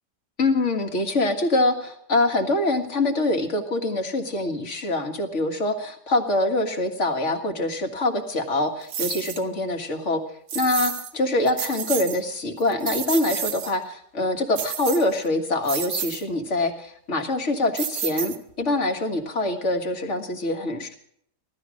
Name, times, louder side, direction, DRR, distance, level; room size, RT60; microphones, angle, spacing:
voice 1, 0.4-10.2 10.5-20.9, left 2 dB, 45° left, 5 dB, 2.0 m, -24 dB
sound 1, 8.9-9.4 10.5-11.1 11.5-12.2 12.6-13.7 14.5-15.3 15.6-16.2 17.8-18.6, right 8 dB, 85° right, 1.6 m, -30 dB
16.5 x 12.5 x 6.3 m, 0.69 s
omnidirectional pair, 1.8 m